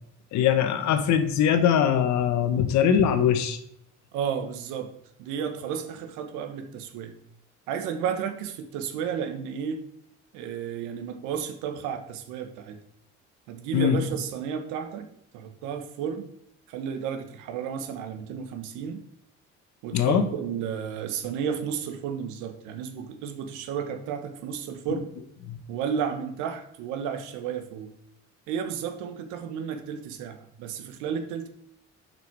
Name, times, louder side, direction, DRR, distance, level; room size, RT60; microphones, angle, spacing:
voice 1, 0.3-3.6 13.7-14.0 19.9-20.2, left 8 dB, 70° left, 9 dB, 1.2 m, -22 dB
voice 2, 4.1-4.9 5.2-7.2 7.7-9.8 10.3-12.8 13.5-15.1 15.3-16.3 16.7-19.0 19.8-25.1 25.7-27.9 28.5-31.5, right 7 dB, 90° right, 7 dB, 1.2 m, -32 dB
7.0 x 5.9 x 4.7 m, 0.72 s
cardioid pair, 90°, 29 cm